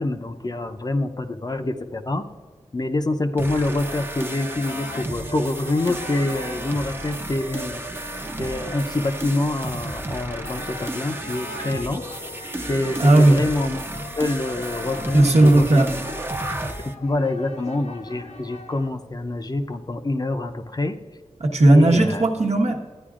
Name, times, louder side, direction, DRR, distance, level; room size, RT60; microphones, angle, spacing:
voice 1, 0.0-2.3 2.7-7.8 8.4-12.1 12.7-13.9 14.2-16.0 16.8-21.0 21.7-22.2, left 2 dB, 35° left, 6 dB, 0.6 m, -26 dB
sound 1, 3.4-16.9, right 1 dB, 20° right, 0.7 m, -33 dB
sound 2, 3.8-18.9, left 2 dB, 75° left, 0.6 m, -40 dB
voice 2, 13.0-13.4 15.1-15.9 21.4-22.8, right 1 dB, 75° right, 1 dB, 1.1 m, -15 dB
13.0 x 9.4 x 2.5 m, 1.4 s
cardioid pair, 50°, 11 cm